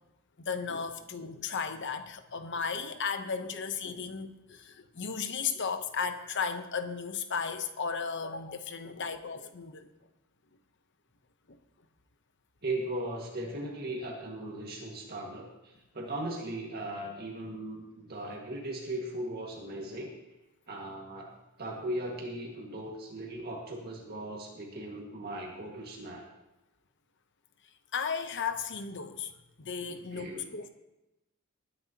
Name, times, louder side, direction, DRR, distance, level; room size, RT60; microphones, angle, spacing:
voice 1, 0.4-9.9 11.5-11.6 27.9-29.3 29.6-30.7, left 6 dB, 55° left, 9 dB, 0.9 m, -35 dB
voice 2, 12.6-20.1 20.7-21.3 21.6-26.3 29.9-30.4, right 1 dB, 45° right, -2 dB, 1.9 m, -38 dB
20.5 x 9.7 x 3.0 m, 0.96 s
head